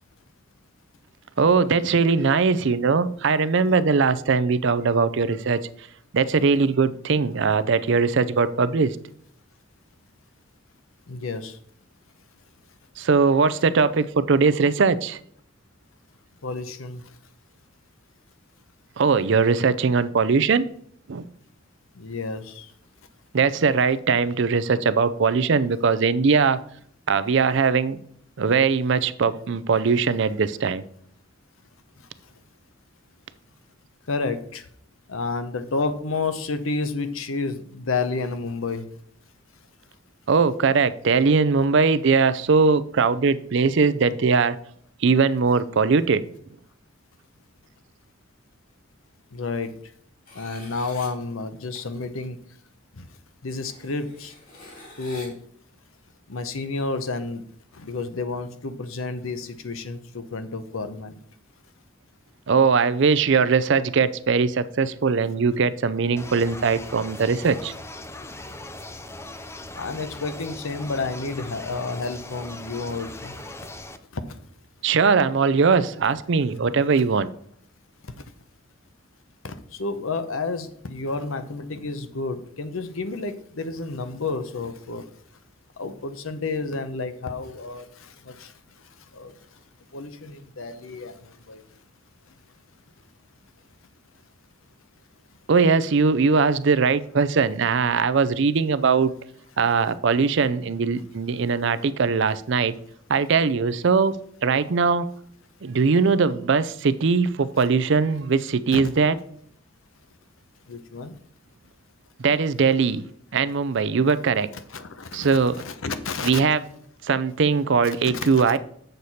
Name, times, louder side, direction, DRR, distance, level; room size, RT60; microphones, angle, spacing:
voice 1, 1.4-5.6 6.1-9.0 13.0-15.2 19.0-20.6 21.1-21.2 23.3-26.6 27.1-28.0 28.4-30.8 40.3-44.6 45.0-46.2 62.5-67.7 74.8-77.3 95.5-99.1 99.6-102.7 103.1-104.2 104.4-105.1 105.6-109.1 112.2-113.0 113.3-114.5 115.1-115.5 116.2-116.6 117.0-118.6, right 5 dB, 60° right, 14 dB, 0.5 m, -20 dB
voice 2, 11.1-11.5 16.4-17.0 22.0-22.7 34.1-34.6 35.1-38.9 49.3-49.7 50.3-52.4 53.0-53.1 53.4-54.3 55.0-55.3 56.3-57.4 57.8-61.1 69.7-73.3 79.4-79.5 79.8-85.0 85.8-87.8 88.4-88.5 89.2-89.3 89.9-91.1 91.5-91.6 108.7-108.8 110.7-111.1 114.7-115.3 115.5-116.4 118.0-118.3, left 3 dB, 75° left, 11 dB, 0.8 m, -30 dB
sound 1, 50.3-51.1 51.8-51.9 52.8-52.9 53.6-55.3, left 2 dB, 45° left, 2.7 m, -46 dB
sound 2, 66.2-74.0, left 2 dB, 15° left, 0.4 m, -39 dB
7.9 x 6.7 x 4.2 m, 0.64 s
head